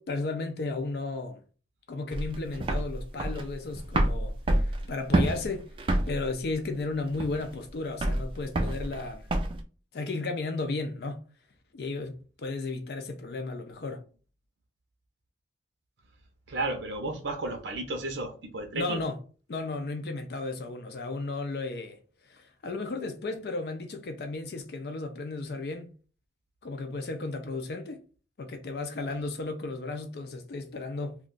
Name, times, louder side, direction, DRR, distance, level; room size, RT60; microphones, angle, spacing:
voice 1, 0.0-1.4 1.9-4.3 4.9-5.7 6.1-9.3 9.9-11.2 11.7-14.0 18.7-19.2 19.5-22.0 22.3-25.9 26.6-28.0 28.4-31.2, left 3 dB, 60° left, 0.4 m, -34 dB
sound 1, 2.1-9.6, right 1 dB, 30° right, 0.3 m, -28 dB
voice 2, 16.5-19.0, right 2 dB, 85° right, 0.7 m, -33 dB
2.4 x 2.3 x 3.7 m
head